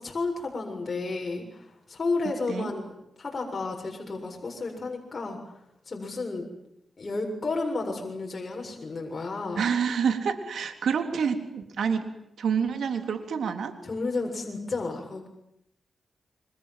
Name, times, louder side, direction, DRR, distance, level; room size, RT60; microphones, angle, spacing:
voice 1, 0.0-5.4 5.9-6.4 7.0-9.7 13.8-15.3, left 3 dB, 45° left, 0 dB, 7.3 m, -32 dB
voice 2, 9.6-13.8, right 6 dB, 80° right, 7 dB, 3.5 m, -28 dB
29.5 x 25.0 x 7.7 m, 0.79 s
cardioid pair, 70°, 0 cm